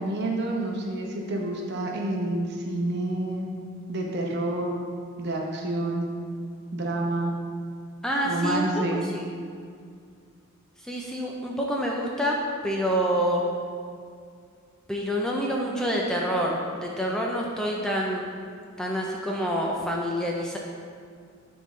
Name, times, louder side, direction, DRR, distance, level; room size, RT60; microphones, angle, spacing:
voice 1, 0.0-3.5 3.9-4.8 5.2-6.1 6.7-7.3 8.2-9.0, right 2 dB, 50° right, -1 dB, 0.8 m, -28 dB
voice 2, 8.0-9.3 10.8-13.4 14.9-18.3 18.8-20.6, equal, 5° left, -2 dB, 0.4 m, -27 dB
10.5 x 3.6 x 3.2 m, 2.2 s
head